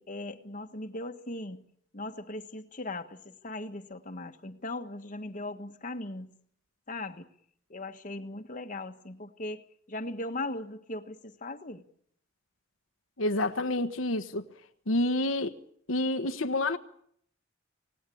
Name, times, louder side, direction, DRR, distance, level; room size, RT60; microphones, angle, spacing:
voice 1, 0.0-1.6 1.9-6.3 6.9-7.3 7.7-11.8, left 2 dB, 40° left, 1.5 m, -39 dB
voice 2, 13.2-14.4 14.9-15.6 15.9-16.8, left 1 dB, 80° left, 1.3 m, -28 dB
27.5 x 18.5 x 8.6 m
head